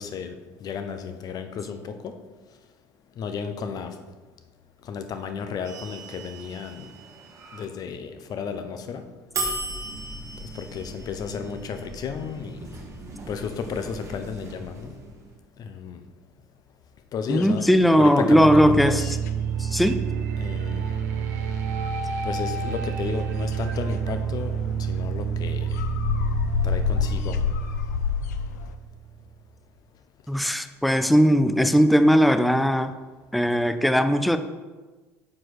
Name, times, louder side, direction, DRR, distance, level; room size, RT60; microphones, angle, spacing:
voice 1, 0.0-2.1 3.2-4.0 4.8-6.9 7.5-9.0 10.4-12.7 13.3-14.9 15.6-16.0 17.1-17.7 17.9-19.1 20.4-21.0 22.2-25.7 26.6-27.4, left 6 dB, 45° left, 8 dB, 0.7 m, -33 dB
sound 1, 5.6-7.6 9.3-15.4, right 2 dB, 35° right, 1.3 m, -37 dB
sound 2, 17.3-18.5 18.7-28.7, left 7 dB, 85° left, 0.4 m, -30 dB
voice 2, 17.3-19.0 19.6-20.1 30.3-32.9 33.3-34.4, equal, ahead, 10 dB, 0.4 m, -19 dB
sound 3, 18.3-29.2, right 7 dB, 80° right, 0.7 m, -29 dB
6.1 x 4.5 x 4.7 m, 1.3 s
hypercardioid pair, 75°, 9 cm